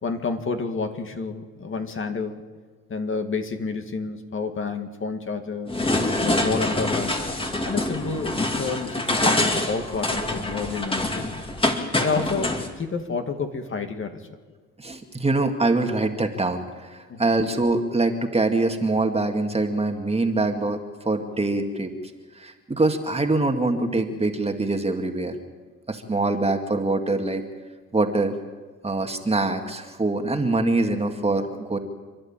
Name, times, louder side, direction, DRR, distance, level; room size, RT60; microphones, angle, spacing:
voice 1, 0.0-2.4 2.9-5.8 6.2-7.2 7.6-11.3 12.0-14.2 17.1-17.3, left 4 dB, 40° left, 6 dB, 2.2 m, -29 dB
sound 1, 5.7-12.7, left 2 dB, 15° left, 2.4 m, -25 dB
voice 2, 14.8-20.8 21.0-21.9 22.4-25.4 25.9-27.4 27.9-28.3 28.8-31.8, right 2 dB, 20° right, 5 dB, 2.1 m, -24 dB
28.0 x 11.0 x 8.9 m, 1.4 s
cardioid pair, 90°, 30 cm